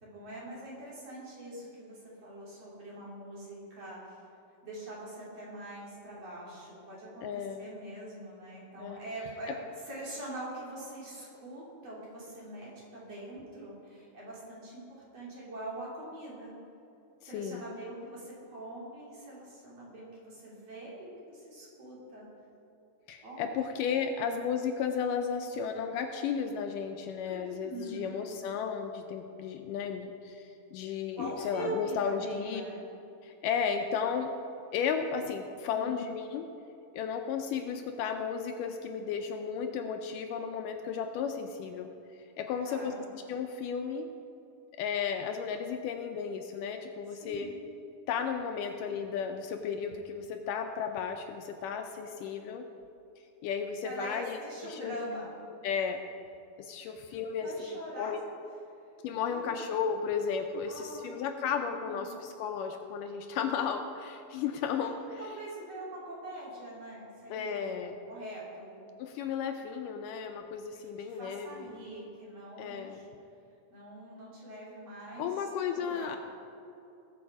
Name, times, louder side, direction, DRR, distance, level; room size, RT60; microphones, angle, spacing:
voice 1, 0.0-4.2 4.6-9.6 9.9-16.6 17.2-22.3 23.2-24.1 27.3-28.3 31.1-32.8 35.7-36.0 42.6-43.1 47.1-47.5 53.8-55.3 56.8-58.2 59.2-59.6 60.7-61.3 61.8-62.2 64.8-67.7 68.1-68.9 70.7-73.1 73.7-76.2, right 1 dB, 45° right, -6 dB, 3.8 m, -43 dB
voice 2, 7.2-7.7 8.8-9.0 17.2-17.6 23.1-32.6 33.2-34.3 34.7-36.5 36.9-41.9 42.4-44.1 44.8-47.5 48.1-52.7 53.4-54.9 55.6-56.0 56.6-58.2 59.0-65.2 67.3-68.0 69.0-71.7 72.6-73.0 75.2-76.2, left 6 dB, 80° left, 5 dB, 2.1 m, -34 dB
19.5 x 7.1 x 4.8 m, 2.7 s
omnidirectional pair, 4.0 m